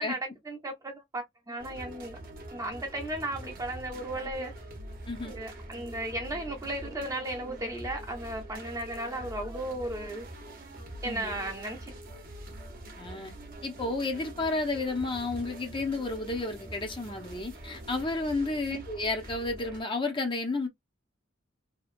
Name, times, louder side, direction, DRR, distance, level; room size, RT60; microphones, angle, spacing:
voice 1, 0.0-2.2 2.5-4.5 5.2-10.3 11.0-11.9 18.7-18.8, right 1 dB, 20° right, 0.7 m, -35 dB
sound 1, 1.6-19.8, right 1 dB, 50° right, 0.9 m, -44 dB
voice 2, 11.0-11.4 13.0-13.3 13.6-20.7, left 3 dB, 25° left, 0.7 m, -32 dB
2.8 x 2.3 x 2.4 m
head